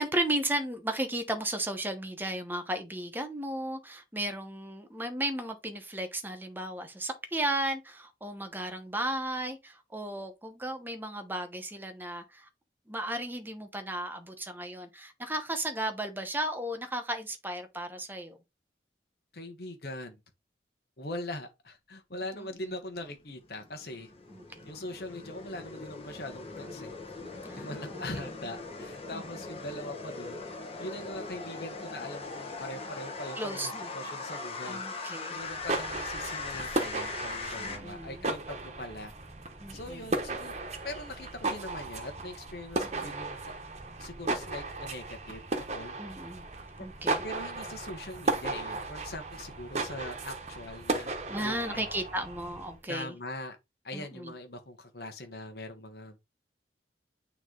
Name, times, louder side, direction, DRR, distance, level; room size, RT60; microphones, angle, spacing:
voice 1, 0.0-12.5 12.9-18.4 24.3-24.7 27.4-28.3 29.1-29.2 33.4-33.9 34.7-35.4 37.6-38.2 39.6-40.0 42.8-43.1 46.0-46.5 46.8-47.3 51.3-53.1 53.9-54.3, right 1 dB, 10° right, 1.0 m, -35 dB
voice 2, 19.3-20.2 21.0-24.1 24.7-26.9 27.5-30.4 30.8-39.1 39.7-40.6 40.8-43.6 44.0-46.0 46.8-46.9 47.2-51.8 52.9-53.6 53.8-56.2, left 1 dB, 60° left, 1.2 m, -41 dB
sound 1, 23.2-37.8, left 3 dB, 35° left, 1.5 m, -40 dB
sound 2, 35.4-52.8, right 2 dB, 40° right, 1.1 m, -35 dB
9.0 x 3.1 x 3.9 m
head